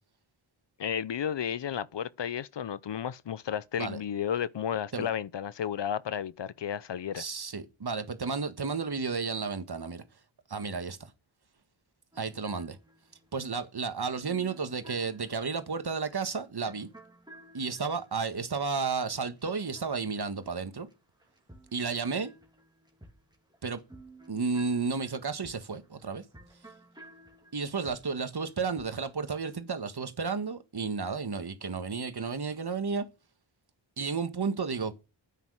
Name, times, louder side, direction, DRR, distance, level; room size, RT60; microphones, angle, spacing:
voice 1, 0.8-7.2, left 8 dB, 60° left, 0.7 m, -33 dB
voice 2, 7.1-10.0 10.5-11.1 12.2-12.8 13.3-16.9 17.5-20.9 21.7-22.3 23.6-23.8 24.3-26.2 27.5-33.0 34.0-34.9, right 5 dB, 55° right, 1.6 m, -32 dB
sound 1, 12.1-20.9 21.2-29.0, right 2 dB, 10° right, 2.7 m, -55 dB
9.2 x 9.1 x 6.4 m
cardioid pair, 55°, 47 cm